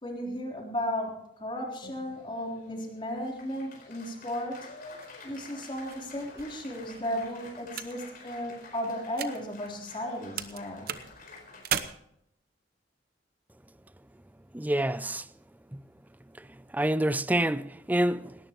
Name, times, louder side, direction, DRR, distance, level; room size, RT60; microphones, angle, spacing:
voice 1, 0.0-4.6 5.2-10.9, equal, 30° left, 3.7 m, -35 dB
Applause, 1.8-11.6, left 3 dB, 55° left, 4.8 m, -49 dB
sound 1, 5.0-10.1 10.4-11.8, right 9 dB, 55° right, 0.9 m, -38 dB
voice 2, 14.5-15.2 15.7-15.8 16.7-18.4, right 1 dB, 10° right, 0.4 m, -27 dB
19.0 x 18.0 x 3.1 m
head